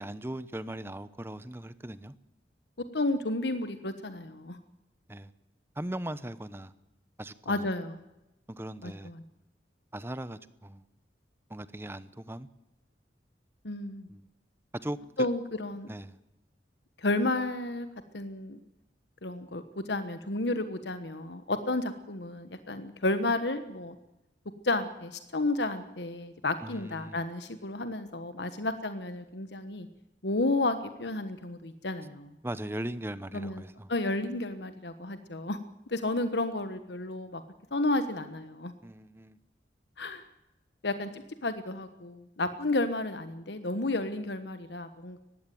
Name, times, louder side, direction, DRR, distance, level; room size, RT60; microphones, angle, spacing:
voice 1, 0.0-2.1 5.1-5.3 5.8-6.7 7.2-7.7 8.5-9.1 9.9-10.8 11.5-12.5 14.1-14.2 14.8-15.0 15.9-16.2 26.6-27.2 32.4-33.9 38.8-39.4, right 1 dB, 15° right, 0.8 m, -39 dB
voice 2, 2.9-4.6 7.5-8.0 8.8-9.2 13.6-14.1 15.2-15.9 17.0-17.9 18.1-18.6 19.2-23.9 24.6-29.9 30.2-32.3 33.3-33.6 33.9-35.6 35.9-37.4 37.7-38.7 40.0-40.2 40.8-45.2, left 2 dB, 75° left, 1.3 m, -32 dB
20.0 x 15.5 x 9.3 m
head